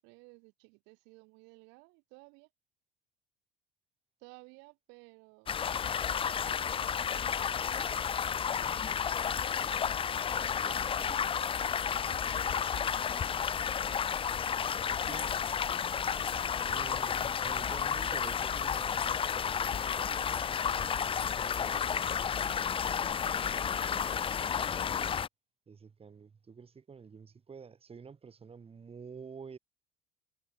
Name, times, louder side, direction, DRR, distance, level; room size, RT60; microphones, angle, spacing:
voice 1, 0.0-2.5 4.2-5.6 5.9-7.4 10.1-13.1 16.2-17.1, right 29 dB, 75° right, 4.8 m, -57 dB
sound 1, 5.5-25.3, left 7 dB, 30° left, 0.6 m, -32 dB
voice 2, 10.5-11.3 15.0-15.4 16.7-25.1 25.7-29.6, right 5 dB, 30° right, 5.1 m, -50 dB
hypercardioid pair, 75°, 19 cm